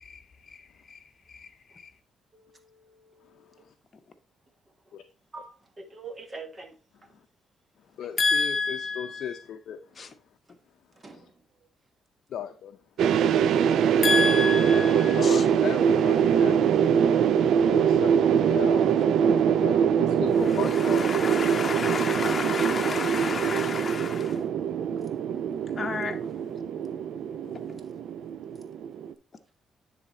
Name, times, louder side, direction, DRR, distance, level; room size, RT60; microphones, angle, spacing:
voice 1, 2.3-3.7 4.9-5.0 5.3-5.5 5.8-6.8 8.2-8.3 10.5-10.6 10.9-11.4 21.0-21.1, right 3 dB, 30° right, 1.3 m, -45 dB
voice 2, 3.2-3.7 4.9-5.0 7.1-7.3 7.8-10.2 11.1-11.2 12.3-12.8 15.1-16.6 16.9-21.1 21.5-21.7, left 9 dB, 70° left, 0.6 m, -38 dB
voice 3, 8.2-9.3 10.0-10.1 14.0-15.4 20.7-24.4 25.7-26.2 27.7-27.8, left 4 dB, 35° left, 0.9 m, -29 dB
sound 1, 13.0-29.1, right 8 dB, 75° right, 0.4 m, -23 dB
9.8 x 3.5 x 4.2 m
cardioid pair, 90°, 0 cm